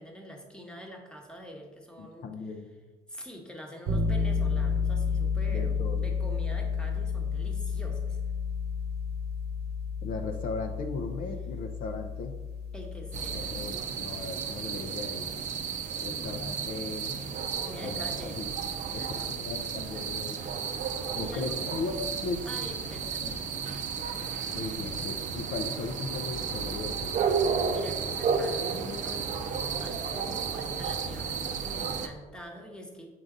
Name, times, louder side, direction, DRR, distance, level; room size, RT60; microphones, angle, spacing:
voice 1, 0.0-2.3 3.1-8.2 12.7-13.5 15.9-16.5 17.6-18.4 18.9-19.3 21.2-21.5 22.5-23.6 27.5-33.1, equal, 5° left, 0 dB, 1.1 m, -45 dB
voice 2, 2.0-2.7 5.5-6.1 10.0-12.3 13.3-15.3 16.0-17.1 17.8-18.5 18.9-19.0 19.3-20.4 21.2-22.5 23.2-23.3 24.5-27.2, left 3 dB, 55° left, 3 dB, 0.6 m, -37 dB
sound 1, 3.9-13.7, left 5 dB, 75° right, 1.0 m, -31 dB
sound 2, 13.1-32.1, right 6 dB, 45° right, 0.6 m, -33 dB
sound 3, 22.5-23.7 24.5-25.6 26.5-27.7 28.5-29.7, left 1 dB, 25° left, 0.9 m, -49 dB
7.5 x 3.9 x 3.8 m, 1.3 s
cardioid pair, 110°, 17 cm